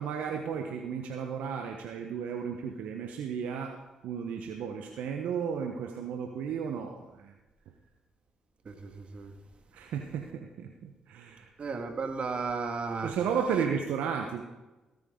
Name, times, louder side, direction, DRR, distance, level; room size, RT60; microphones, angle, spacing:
voice 1, 0.0-7.3 9.7-11.5 13.0-14.4, right 7 dB, 75° right, 3 dB, 1.1 m, -34 dB
voice 2, 8.7-9.3 11.6-13.1, right 4 dB, 50° right, 5 dB, 2.1 m, -34 dB
18.0 x 9.3 x 3.9 m, 1.1 s
supercardioid pair, 50°, 2 cm